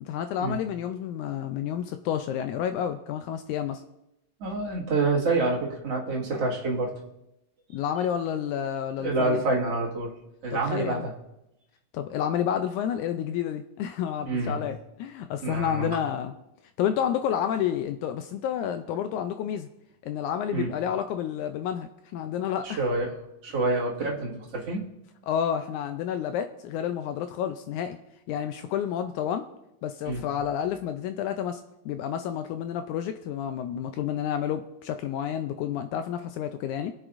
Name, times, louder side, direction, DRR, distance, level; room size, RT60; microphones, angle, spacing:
voice 1, 0.0-3.8 7.7-9.4 10.5-11.1 11.9-16.3 16.8-19.7 20.0-22.8 25.3-28.0 28.3-29.5 29.8-36.9, left 9 dB, 85° left, 8 dB, 1.7 m, -30 dB
voice 2, 4.4-6.9 9.0-10.1 10.4-11.2 14.3-14.6 15.4-16.0 20.5-20.7 22.6-23.2 23.4-24.8 30.1-30.2, right 3 dB, 50° right, -3 dB, 2.5 m, -27 dB
21.5 x 8.0 x 2.5 m, 0.88 s
omnidirectional pair, 3.9 m